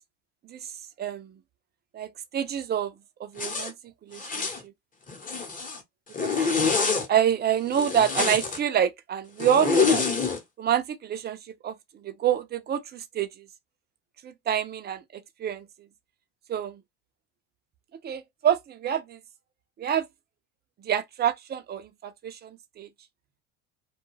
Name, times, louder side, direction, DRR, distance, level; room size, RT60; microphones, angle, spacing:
voice 1, 1.0-1.3 1.9-2.9 3.2-3.7 4.0-4.7 6.2-6.3 7.1-10.0 10.6-11.4 11.6-13.5 14.2-15.7 16.5-16.8 18.0-19.2 19.8-20.1 20.8-22.9, right 9 dB, 30° right, 0.5 m, -27 dB
Zipper (clothing), 3.4-3.7 4.2-4.6 5.1-5.8 6.1-7.1 7.7-8.6 9.4-10.4, left 5 dB, 25° left, 0.9 m, -26 dB
2.3 x 2.2 x 3.1 m
supercardioid pair, 100°, 36 cm